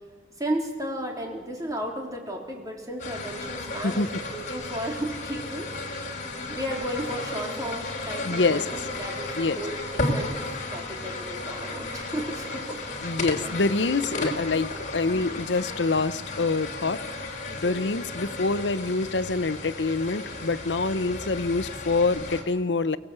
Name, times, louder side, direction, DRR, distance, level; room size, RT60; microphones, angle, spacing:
voice 1, 0.4-6.1 6.5-13.2 14.0-14.2 17.5-17.8, right 1 dB, 20° right, 0 dB, 3.7 m, -34 dB
sound 1, 3.0-22.4, left 2 dB, 45° left, 3.4 m, -34 dB
voice 2, 8.3-8.6 9.4-9.6 13.0-17.0 17.6-23.0, left 3 dB, 85° left, 13 dB, 0.8 m, -26 dB
24.5 x 17.5 x 8.1 m, 1.5 s
head